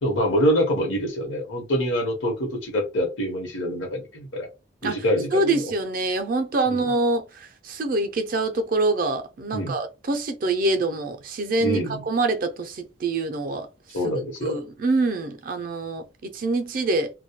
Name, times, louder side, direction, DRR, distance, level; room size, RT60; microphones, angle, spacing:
voice 1, 0.0-4.5 4.8-5.7 6.7-6.9 9.5-9.7 11.6-12.0 13.9-14.6, equal, 80° left, 0.9 m, -25 dB
voice 2, 5.3-11.8 12.1-13.7 14.0-14.1 14.4-17.1, right 2 dB, 45° right, 0.4 m, -25 dB
2.2 x 2.1 x 2.8 m
head